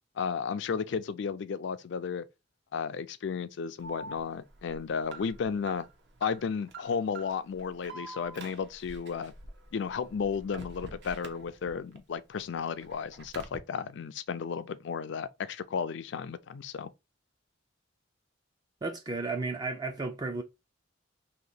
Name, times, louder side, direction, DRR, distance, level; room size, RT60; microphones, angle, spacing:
voice 1, 0.2-2.3 2.7-5.9 6.2-9.3 9.7-16.9, left 6 dB, 60° left, 0.4 m, -33 dB
Alarm, 3.8-12.0 12.3-13.6, right 2 dB, 60° right, 0.7 m, -46 dB
voice 2, 18.8-20.4, right 3 dB, 20° right, 0.4 m, -33 dB
2.8 x 2.8 x 4.0 m
head